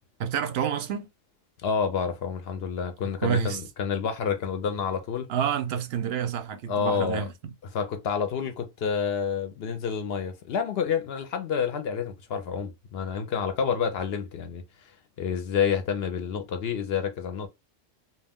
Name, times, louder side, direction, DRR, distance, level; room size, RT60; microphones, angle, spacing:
voice 1, 0.2-1.1 3.2-3.6 5.3-7.3, right 8 dB, 65° right, 0.7 m, -28 dB
voice 2, 1.6-5.3 6.7-7.2 7.7-14.6 15.2-17.5, left 6 dB, 65° left, 0.7 m, -29 dB
2.3 x 2.3 x 3.4 m
omnidirectional pair, 1.3 m